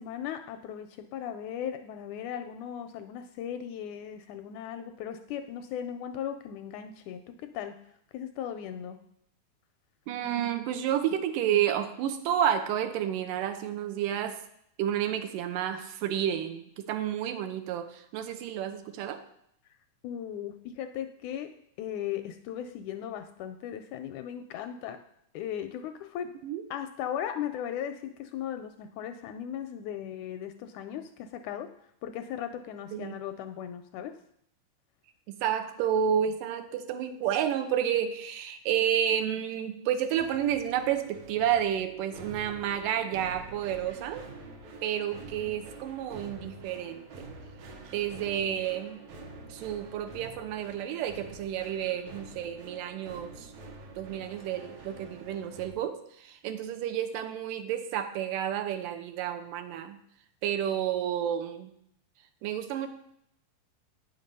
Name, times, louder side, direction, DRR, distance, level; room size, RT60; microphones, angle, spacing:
voice 1, 0.0-7.2 7.5-7.8 8.1-9.0 20.0-21.5 21.8-25.0 25.3-26.3 26.7-31.7 32.0-34.1, left 9 dB, 80° left, 7 dB, 1.8 m, -37 dB
voice 2, 10.1-14.4 14.8-19.2 26.4-26.6 32.9-33.2 35.3-44.2 44.8-47.3 47.9-49.0 49.5-53.5 54.0-60.0 60.4-61.7 62.4-62.9, right 10 dB, 85° right, 7 dB, 2.4 m, -30 dB
sound 1, 40.2-55.8, right 3 dB, 65° right, 2.3 m, -47 dB
8.9 x 5.9 x 5.3 m, 0.73 s
omnidirectional pair, 3.7 m